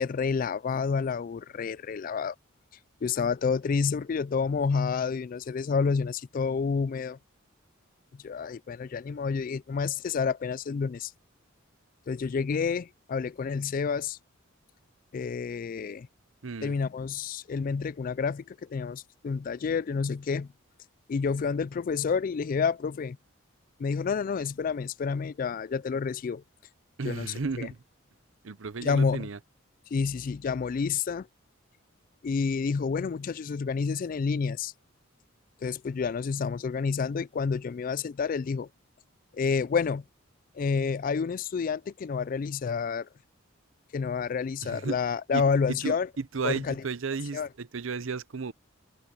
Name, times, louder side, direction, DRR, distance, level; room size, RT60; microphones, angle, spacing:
voice 1, 0.0-2.4 3.0-7.2 8.2-11.1 12.1-14.2 15.1-16.1 16.6-20.5 21.1-23.2 23.8-26.4 27.1-27.7 28.8-29.3 29.9-31.3 32.2-34.7 35.6-38.7 39.3-40.0 40.5-43.1 43.9-46.1 46.4-46.7 47.3-47.5, left 5 dB, 40° left, 0.3 m, -29 dB
voice 2, 16.4-16.7 27.0-27.8 28.4-29.4 44.6-45.0 45.3-45.4 45.7-48.5, right 4 dB, 70° right, 0.7 m, -34 dB
head